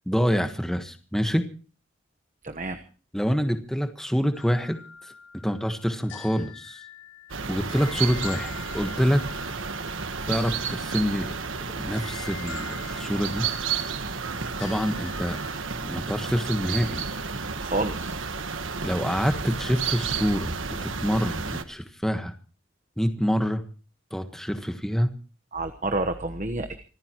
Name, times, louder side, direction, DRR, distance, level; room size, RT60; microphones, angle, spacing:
voice 1, 0.1-1.5 3.1-5.1 5.4-6.8 7.5-9.5 10.3-11.3 11.8-13.5 14.6-15.4 15.8-17.0 18.8-22.3 23.0-23.6 24.1-25.1, equal, ahead, 7 dB, 1.3 m, -26 dB
voice 2, 2.4-2.8 17.6-18.1 25.5-26.8, right 2 dB, 40° right, 7 dB, 1.1 m, -29 dB
sound 1, 4.3-15.6, left 7 dB, 85° left, 4.6 m, -45 dB
sound 2, 7.3-21.6, right 5 dB, 80° right, 1.4 m, -32 dB
26.5 x 14.5 x 3.0 m, 0.38 s
head